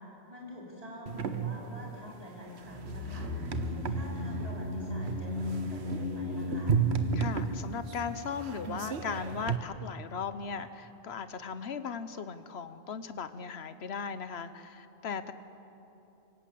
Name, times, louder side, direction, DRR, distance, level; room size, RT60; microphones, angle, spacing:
voice 1, 0.0-3.3 3.7-6.8, equal, 35° right, -4 dB, 5.5 m, -46 dB
sound 1, 1.1-9.6, right 7 dB, 85° right, 1.3 m, -34 dB
sound 2, 2.7-9.1 9.4-9.5, left 2 dB, 60° left, 1.6 m, -36 dB
voice 2, 7.1-15.3, left 6 dB, 75° left, 12 dB, 1.2 m, -38 dB
25.0 x 17.5 x 8.5 m, 3.0 s
omnidirectional pair, 1.1 m